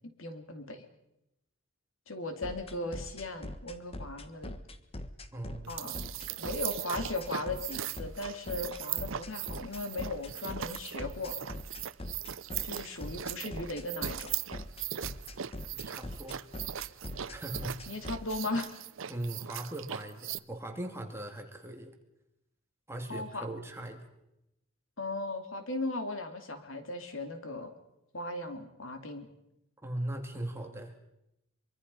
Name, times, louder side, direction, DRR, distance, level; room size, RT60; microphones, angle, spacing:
voice 1, 0.2-0.8 2.1-4.5 5.7-6.1 6.4-11.4 12.6-14.3 17.9-18.8 23.1-23.5 25.0-27.7 28.1-29.3, left 2 dB, 80° left, 7 dB, 2.8 m, -37 dB
sound 1, 2.4-18.4, left 1 dB, 30° left, 1.3 m, -41 dB
voice 2, 5.3-5.8 15.7-16.5 17.3-18.0 19.1-21.9 22.9-24.0 29.8-31.1, right 1 dB, 15° right, 3 dB, 2.6 m, -39 dB
sound 2, 5.6-20.4, right 10 dB, 75° right, 0.7 m, -39 dB
24.0 x 24.0 x 5.5 m, 0.87 s
head